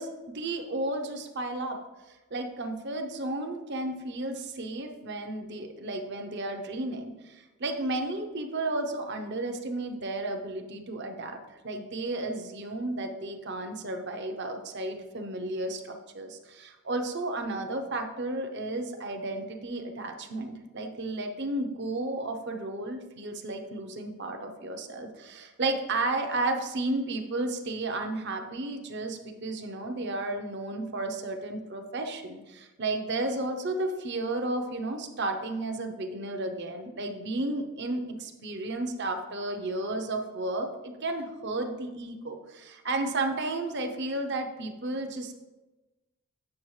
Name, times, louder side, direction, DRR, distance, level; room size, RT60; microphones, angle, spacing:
voice 1, 0.0-1.8 2.1-45.3, right 2 dB, 50° right, 5 dB, 0.7 m, -33 dB
8.5 x 6.2 x 3.2 m, 1.1 s
head